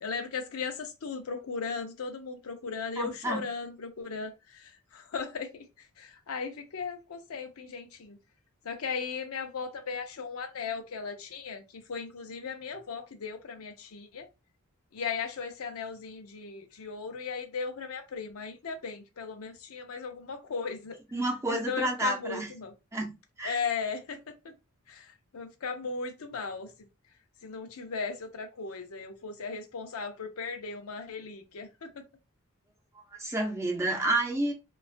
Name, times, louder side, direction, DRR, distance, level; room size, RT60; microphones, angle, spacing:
voice 1, 0.0-5.5 6.0-8.2 8.6-11.6 11.9-14.3 14.9-21.0 21.5-22.7 23.4-24.2 24.4-24.5 24.9-26.7 27.4-32.0, left 5 dB, 85° left, 0.6 m, -37 dB
voice 2, 3.0-3.4 21.1-22.5 22.9-23.1 23.4-23.6 33.2-34.5, right 2 dB, 15° right, 0.6 m, -29 dB
2.3 x 2.3 x 2.4 m
head